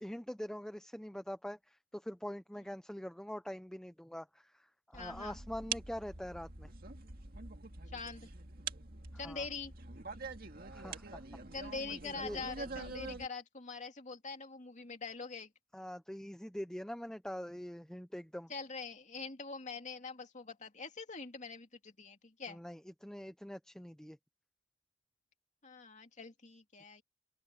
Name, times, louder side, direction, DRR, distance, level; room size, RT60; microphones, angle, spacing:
voice 1, 0.0-6.7 9.1-9.5 10.7-11.2 12.0-12.5 15.7-18.5 22.5-24.2, equal, 5° left, 0.6 m, -44 dB
voice 2, 4.9-5.4 7.9-8.3 9.2-9.7 11.5-15.5 18.5-22.6 25.6-27.0, left 4 dB, 40° left, 2.4 m, -44 dB
sound 1, 4.9-13.3, right 4 dB, 55° right, 2.1 m, -45 dB
open air
head